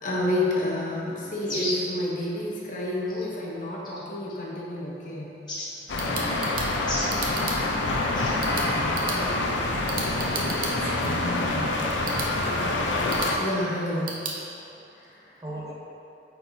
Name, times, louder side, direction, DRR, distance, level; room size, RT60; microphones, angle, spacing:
voice 1, 0.0-5.4 7.4-7.5 13.4-14.5 14.9-15.3, left 1 dB, 45° left, -4 dB, 1.0 m, -29 dB
sound 1, 1.4-1.9 3.1-3.3 3.8-4.3 5.5-5.7 6.9-7.1 8.1-8.3, left 1 dB, 25° left, 1.0 m, -32 dB
sound 2, 5.6-14.4, right 3 dB, 50° right, 0.8 m, -37 dB
sound 3, 5.9-13.4, left 2 dB, 90° left, 0.6 m, -26 dB
voice 2, 6.0-6.5 10.9-12.1 15.4-15.7, right 1 dB, 20° right, -5 dB, 0.8 m, -39 dB
8.5 x 4.6 x 2.7 m, 2.8 s
head